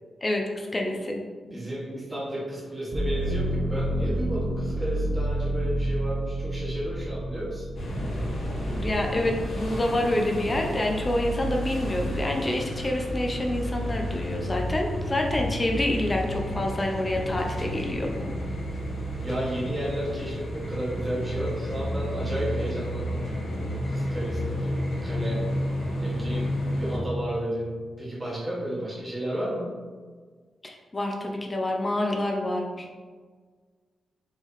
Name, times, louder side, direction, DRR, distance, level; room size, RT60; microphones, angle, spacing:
voice 1, 0.2-1.2 8.7-18.1 30.6-33.0, left 1 dB, 20° left, 1 dB, 0.5 m, -27 dB
voice 2, 1.5-7.7 19.2-25.5 26.0-29.7, right 1 dB, 20° right, -6 dB, 1.2 m, -33 dB
sound 1, 2.9-10.7 11.2-12.0, right 1 dB, 40° right, 0.6 m, -30 dB
sound 2, 7.8-27.0, equal, 75° left, 1.4 m, -31 dB
4.5 x 3.4 x 3.1 m, 1.5 s
wide cardioid pair, 145°, 0 cm